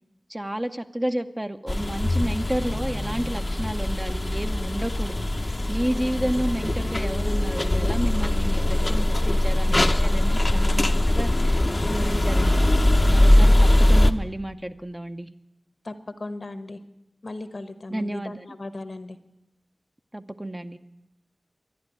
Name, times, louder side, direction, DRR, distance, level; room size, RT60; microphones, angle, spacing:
voice 1, 0.3-10.8 11.1-12.6 13.1-15.3 17.9-18.5 20.1-20.8, right 1 dB, 20° right, 8 dB, 0.7 m, -31 dB
sound 1, 1.7-14.1, left 1 dB, 35° left, 0.7 m, -21 dB
voice 2, 10.5-11.0 15.8-15.9 16.2-16.8 17.2-19.2, left 2 dB, 60° left, 11 dB, 1.0 m, -36 dB
12.0 x 10.5 x 9.2 m, 0.89 s
wide cardioid pair, 65°, 0 cm